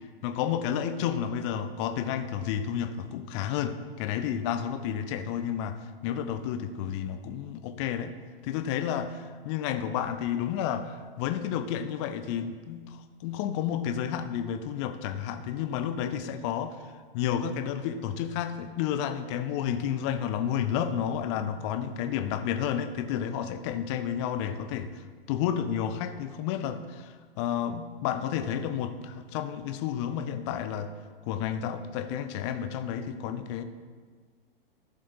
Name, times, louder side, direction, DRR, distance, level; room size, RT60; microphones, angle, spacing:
voice 1, 0.2-5.8 6.0-8.2 8.4-16.7 17.1-24.9 25.3-30.9 31.2-33.6, left 9 dB, 30° left, 9 dB, 0.6 m, -31 dB
14.0 x 11.0 x 2.8 m, 1.5 s
figure-of-eight pair, 110°, 29 cm